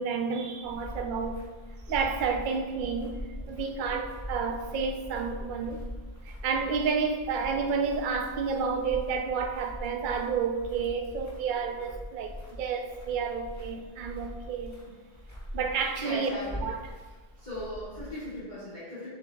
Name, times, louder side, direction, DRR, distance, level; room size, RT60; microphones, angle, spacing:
voice 1, 0.0-1.4 1.9-3.2 3.5-5.8 6.4-14.7 15.5-16.3 16.6-16.8, right 5 dB, 55° right, 0.7 m, -30 dB
sound 1, 0.6-18.4, equal, 15° left, 1.4 m, -42 dB
voice 2, 16.0-16.6 17.4-19.1, left 1 dB, 40° left, 2.2 m, -38 dB
7.7 x 7.0 x 2.3 m
omnidirectional pair, 1.1 m